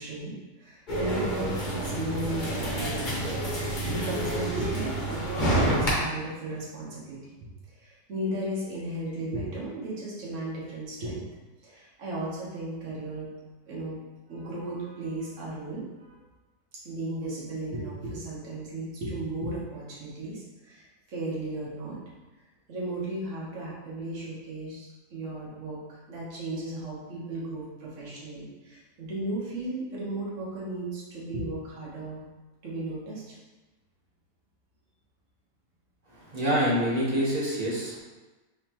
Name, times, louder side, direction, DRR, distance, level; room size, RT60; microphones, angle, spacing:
voice 1, 0.0-3.3 3.8-5.2 5.5-7.3 7.8-11.2 11.6-13.3 13.6-14.0 14.3-16.2 16.8-22.0 22.7-32.2 32.6-33.4, right 1 dB, 50° right, -7 dB, 1.4 m, -35 dB
sound 1, 0.9-5.9, right 1 dB, 40° left, 0.8 m, -28 dB
voice 2, 36.2-38.0, equal, 30° right, -7 dB, 0.9 m, -26 dB
4.0 x 3.1 x 2.9 m, 1.2 s
omnidirectional pair, 1.8 m